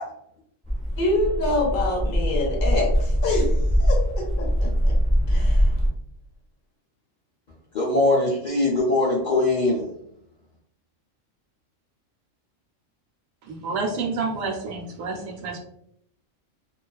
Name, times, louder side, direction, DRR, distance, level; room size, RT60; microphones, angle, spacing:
sound 1, 0.6-5.9, equal, 5° left, 0.6 m, -22 dB
voice 1, 1.0-4.9 5.3-5.7, left 2 dB, 50° left, -2 dB, 0.8 m, -26 dB
voice 2, 7.7-9.9, left 2 dB, 70° left, -5 dB, 0.4 m, -21 dB
voice 3, 13.4-15.6, right 4 dB, 80° right, 1 dB, 1.0 m, -29 dB
2.3 x 2.3 x 2.3 m, 0.72 s
omnidirectional pair, 1.4 m